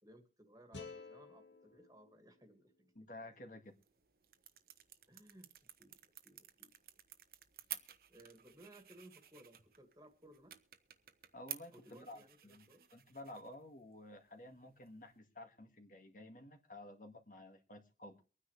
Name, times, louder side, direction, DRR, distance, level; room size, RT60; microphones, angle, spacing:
voice 1, 0.0-2.9 5.1-5.5 5.8-6.0 6.2-6.7 8.1-10.6 11.7-12.8, right 1 dB, 20° right, 6 dB, 2.0 m, -61 dB
sound 1, 0.7-3.8, left 4 dB, 85° left, 1.9 m, -55 dB
voice 2, 3.0-3.7 11.3-12.7 12.9-18.2, left 1 dB, 45° left, 5 dB, 1.9 m, -53 dB
sound 2, 3.6-15.2, right 12 dB, 55° right, 1.1 m, -54 dB
24.0 x 9.7 x 3.3 m, 0.34 s
head